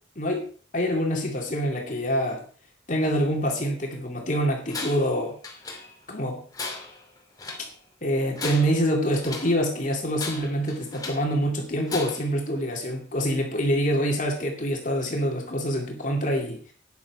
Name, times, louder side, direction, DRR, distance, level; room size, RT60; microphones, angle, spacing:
voice 1, 0.7-2.4 2.9-5.4 6.1-6.4 8.0-16.6, equal, 45° left, 1 dB, 2.4 m, -26 dB
Tools, 4.7-5.1 5.4-6.1 6.5-7.7 8.2-9.6 10.1-11.3 11.9-12.4, left 3 dB, 20° left, 2.6 m, -37 dB
13.0 x 9.6 x 4.8 m, 0.42 s
head